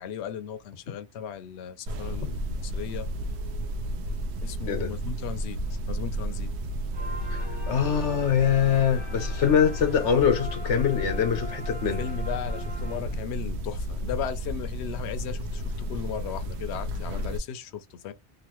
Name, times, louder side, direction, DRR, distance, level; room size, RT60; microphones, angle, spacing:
voice 1, 0.0-3.1 4.4-5.6 5.9-6.5 12.0-18.1, left 8 dB, 70° left, 0.8 m, -36 dB
sound 1, 1.9-17.4, equal, 75° right, 0.8 m, -32 dB
sound 2, 6.9-13.5, left 1 dB, 25° right, 1.0 m, -42 dB
voice 2, 7.3-12.0, left 8 dB, 90° left, 1.2 m, -24 dB
3.0 x 2.4 x 3.0 m
omnidirectional pair, 1.2 m